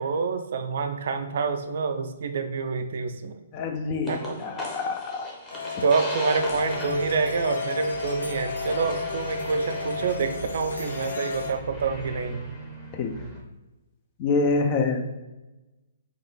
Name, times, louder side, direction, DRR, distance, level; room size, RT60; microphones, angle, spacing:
voice 1, 0.0-3.3 4.1-4.4 5.8-12.4, right 4 dB, 55° right, 7 dB, 0.4 m, -27 dB
voice 2, 3.5-5.3 5.7-5.8 12.9-13.1 14.2-15.2, left 3 dB, 35° left, 4 dB, 0.5 m, -26 dB
sound 1, 4.1-13.4, equal, 15° left, 1.1 m, -38 dB
sound 2, 5.5-11.5, left 5 dB, 70° left, 0.7 m, -33 dB
4.9 x 2.5 x 3.5 m, 1.1 s
figure-of-eight pair, 125°, 0 cm